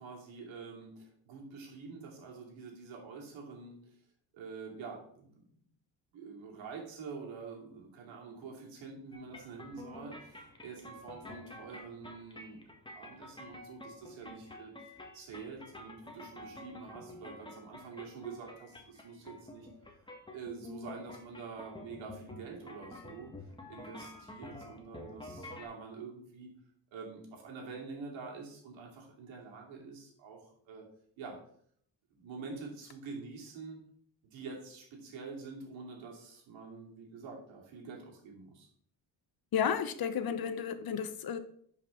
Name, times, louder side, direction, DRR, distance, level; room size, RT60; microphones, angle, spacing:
voice 1, 0.0-3.9 4.3-5.5 6.1-12.6 12.9-19.7 20.3-23.3 23.7-26.5 26.9-30.8 31.2-31.4 32.1-33.8 34.2-38.7, right 4 dB, 85° right, -1 dB, 2.7 m, -46 dB
sound 1, 9.1-25.6, left 2 dB, 10° left, 1.6 m, -49 dB
voice 2, 39.5-41.4, left 8 dB, 50° left, 11 dB, 0.9 m, -32 dB
10.5 x 5.4 x 3.8 m, 0.64 s
cardioid pair, 100°, 45 cm